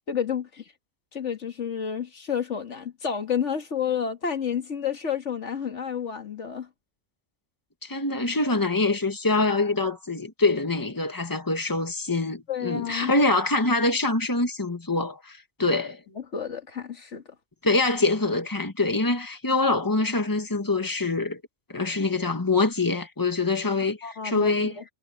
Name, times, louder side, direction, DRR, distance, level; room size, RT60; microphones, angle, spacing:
voice 1, 0.1-0.6 1.1-6.7 12.5-13.1 16.2-17.2 24.0-24.8, left 7 dB, 80° left, 2.1 m, -30 dB
voice 2, 7.8-16.0 17.6-21.4 21.7-24.0 24.2-24.7, left 3 dB, 15° left, 1.8 m, -24 dB
omnidirectional pair, 1.2 m